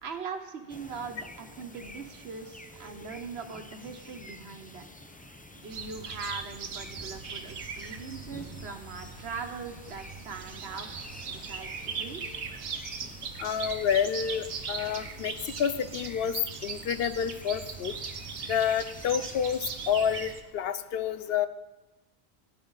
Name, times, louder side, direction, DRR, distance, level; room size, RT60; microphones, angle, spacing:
voice 1, 0.0-4.9 5.5-12.2, right 5 dB, 70° right, 7 dB, 1.3 m, -41 dB
sound 1, 0.7-20.3, left 1 dB, 10° left, 0.4 m, -49 dB
sound 2, 5.7-20.4, right 6 dB, 90° right, 1.2 m, -39 dB
voice 2, 13.4-16.4 16.6-17.9 18.5-21.5, left 8 dB, 65° left, 13 dB, 0.9 m, -29 dB
16.0 x 10.5 x 4.0 m, 1.0 s
omnidirectional pair, 1.1 m